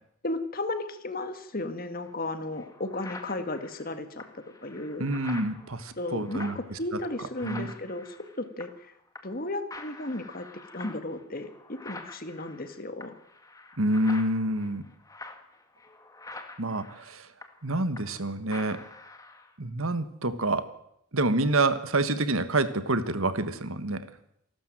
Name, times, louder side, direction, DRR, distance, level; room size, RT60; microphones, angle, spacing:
voice 1, 0.2-5.1 6.0-8.9 9.2-10.5 10.7-13.1, left 2 dB, 40° left, 9 dB, 1.8 m, -34 dB
sound 1, 2.0-2.1 2.6-8.9 9.1-9.4 9.7-18.2 18.5-19.5, left 2 dB, 15° left, 1.7 m, -46 dB
voice 2, 5.0-6.8 7.4-7.7 13.8-14.8 16.6-17.3 17.6-18.8 19.6-20.7 21.1-24.1, right 2 dB, 70° right, 13 dB, 1.4 m, -27 dB
28.0 x 12.5 x 7.7 m, 0.76 s
head